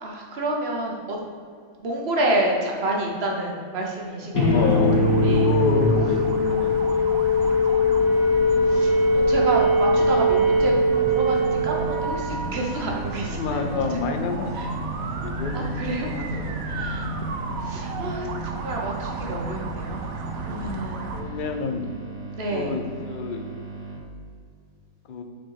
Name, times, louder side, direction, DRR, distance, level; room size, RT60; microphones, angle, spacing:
voice 1, 0.0-1.2 1.8-4.7 5.2-5.5 8.7-13.7 14.6-14.7 15.5-16.1 16.7-17.0 17.6-20.0 20.3-21.1 22.3-22.8, right 1 dB, 50° right, 0 dB, 1.2 m, -29 dB
sound 1, 4.3-12.3, left 1 dB, 75° left, 1.6 m, -20 dB
sound 2, 4.3-21.2, right 2 dB, 80° right, 1.1 m, -33 dB
voice 2, 4.4-6.7 7.7-8.1 13.3-14.5 14.8-15.6 15.8-16.8 20.5-20.9 21.1-21.8 22.5-23.5 25.1-25.2, left 5 dB, 55° left, 5 dB, 0.5 m, -29 dB
sound 3, 8.0-24.0, right 4 dB, 10° right, 1.1 m, -38 dB
6.2 x 4.3 x 4.7 m, 2.1 s
omnidirectional pair, 1.5 m